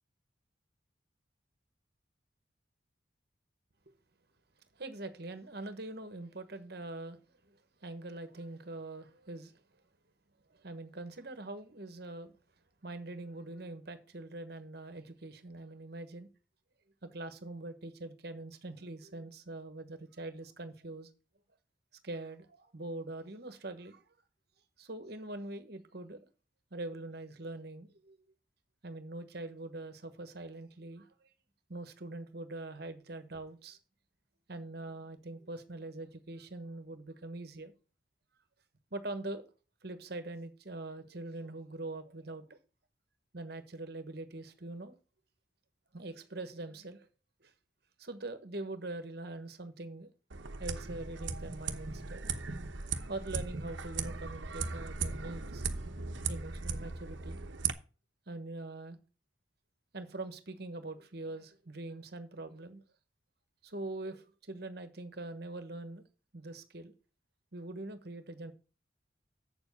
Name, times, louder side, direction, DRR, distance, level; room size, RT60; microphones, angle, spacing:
voice 1, 4.7-9.6 10.5-12.3 12.8-16.3 17.0-21.1 22.0-24.0 24.8-26.3 26.7-28.2 28.8-31.3 31.7-33.8 34.5-37.7 38.9-39.4 39.8-42.6 43.3-44.9 45.9-47.1 47.4-47.5 48.0-50.1 50.6-52.3 53.1-55.7 56.3-57.4 58.3-59.0 59.9-62.8 63.6-66.1 66.3-66.9 67.5-68.5, right 2 dB, 55° right, 1.3 m, -43 dB
sound 1, 50.3-57.7, right 5 dB, 80° right, 1.0 m, -38 dB
7.9 x 7.1 x 5.4 m
head